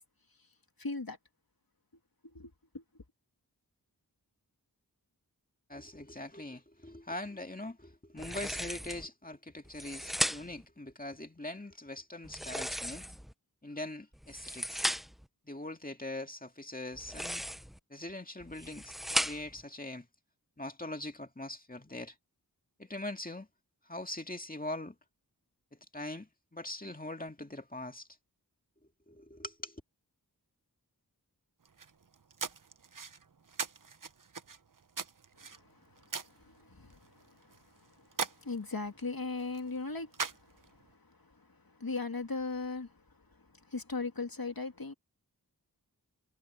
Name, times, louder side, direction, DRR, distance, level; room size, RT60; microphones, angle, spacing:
voice 1, 0.8-1.2 2.3-2.8 35.4-35.8 36.2-37.9 38.4-40.6 41.1-43.0 43.7-44.9, left 3 dB, 65° left, 2.3 m, -39 dB
voice 2, 5.7-13.0 13.6-14.8 15.4-17.4 17.9-18.9 19.2-20.1 20.6-22.2 22.8-23.5 23.8-25.0 25.7-28.1 29.1-29.8, left 1 dB, 20° left, 2.1 m, -42 dB
sound 1, 8.2-9.1 9.6-10.6 12.2-13.3 14.1-15.2 16.9-17.8 18.4-19.6, equal, ahead, 0.9 m, -36 dB
sound 2, 31.6-40.9, right 5 dB, 55° right, 0.8 m, -43 dB
wide cardioid pair, 40°, 38 cm